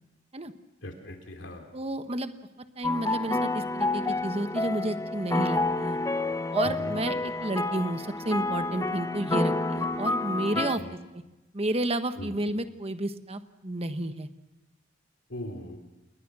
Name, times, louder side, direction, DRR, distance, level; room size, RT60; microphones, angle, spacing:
voice 1, 0.8-1.6 6.6-6.9 10.7-10.9 12.2-12.3 15.3-15.8, left 1 dB, 65° left, 4 dB, 3.2 m, -39 dB
voice 2, 1.7-2.3 2.8-6.0 6.5-10.8 11.1-11.2 11.5-14.3, right 1 dB, 30° right, 9 dB, 1.2 m, -31 dB
sound 1, 2.8-10.8, left 2 dB, 15° left, 0.8 m, -29 dB
28.0 x 21.5 x 6.2 m, 1.0 s
head